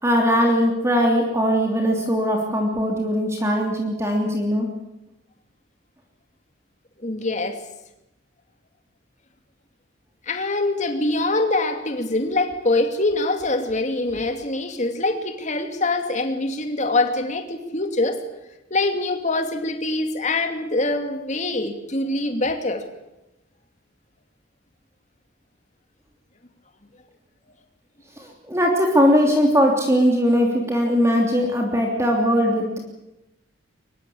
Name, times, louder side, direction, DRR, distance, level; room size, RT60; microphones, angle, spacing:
voice 1, 0.0-4.7 28.2-32.8, equal, 15° right, 1 dB, 3.0 m, -20 dB
voice 2, 7.0-7.6 10.3-18.2 18.7-22.8, left 2 dB, 35° left, 6 dB, 2.6 m, -24 dB
23.5 x 21.5 x 8.6 m, 0.92 s
head